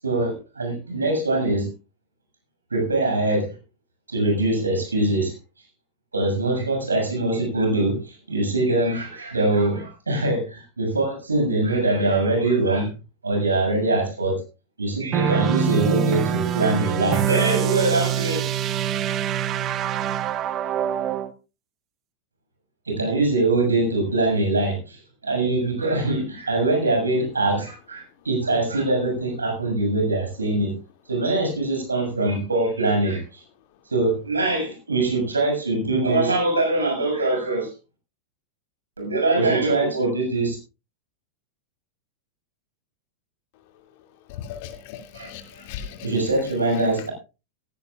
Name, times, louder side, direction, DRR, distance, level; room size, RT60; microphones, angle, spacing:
voice 1, 0.0-1.7 2.7-3.6 4.1-5.3 6.1-12.9 13.2-14.4 14.8-18.4 22.9-30.8 31.1-33.4 33.9-37.7 39.0-40.6 45.1-45.3 46.0-47.1, right 2 dB, 75° right, 6.7 m, -23 dB
sound 1, 15.1-21.3, right 10 dB, 30° right, 1.1 m, -24 dB
voice 2, 44.4-46.1, left 9 dB, 50° left, 2.5 m, -37 dB
17.5 x 16.5 x 2.4 m
figure-of-eight pair, 90°, 0 cm